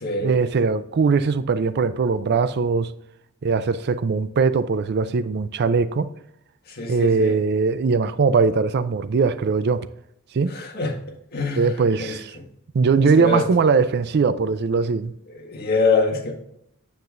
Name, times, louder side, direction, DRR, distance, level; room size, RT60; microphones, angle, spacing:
voice 1, 0.2-2.9 3.4-6.1 6.9-9.9 10.3-10.5 11.6-12.4 12.7-15.1, right 4 dB, 50° right, 0.4 m, -20 dB
voice 2, 6.8-7.3 10.5-10.9 11.3-11.6 12.0-12.1 13.2-13.4 15.4-16.3, left 3 dB, 50° left, 1.7 m, -23 dB
9.3 x 7.4 x 2.5 m
head